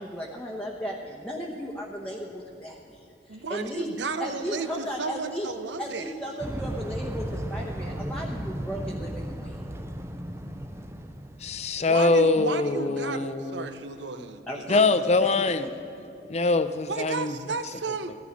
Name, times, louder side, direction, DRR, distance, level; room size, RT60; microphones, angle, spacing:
voice 1, 0.0-3.9 4.2-5.5 5.8-9.7 14.2-14.8 15.2-15.7, equal, 5° left, -2 dB, 0.9 m, -36 dB
voice 2, 3.3-6.1 11.8-15.0 16.9-18.2, right 4 dB, 80° right, 10 dB, 0.8 m, -33 dB
sound 1, 6.4-11.8, right 1 dB, 15° right, 0.6 m, -35 dB
voice 3, 11.4-13.7 14.7-15.7 16.3-17.4, left 3 dB, 35° left, 10 dB, 0.6 m, -23 dB
15.5 x 11.5 x 5.2 m, 2.7 s
head